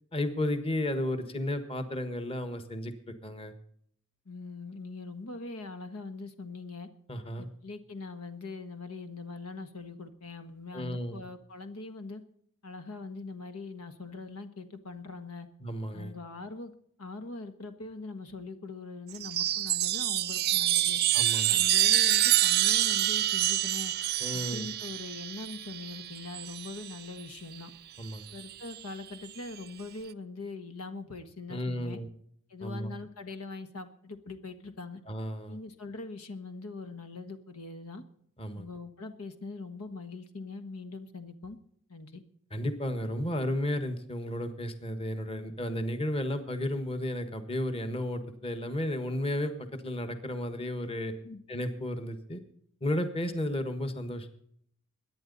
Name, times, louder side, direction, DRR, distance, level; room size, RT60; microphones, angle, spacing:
voice 1, 0.1-3.5 7.1-7.5 10.7-11.2 15.6-16.1 21.1-21.6 24.2-24.7 28.0-28.2 31.5-32.1 32.6-32.9 35.1-35.6 38.4-38.7 42.5-51.1 51.5-52.4 52.8-54.3, left 1 dB, 25° left, 9 dB, 1.4 m, -33 dB
voice 2, 4.2-6.9 7.4-12.2 12.6-15.5 15.9-16.7 17.0-21.0 21.5-23.9 24.3-27.7 28.3-32.0 32.5-35.0 35.5-38.0 38.5-41.6 41.9-42.2 51.2-51.4, left 3 dB, 85° left, 9 dB, 1.5 m, -42 dB
Chime, 19.1-26.9 28.2-28.8, right 13 dB, 45° right, 0.5 m, -27 dB
23.0 x 9.9 x 4.1 m, 0.66 s
head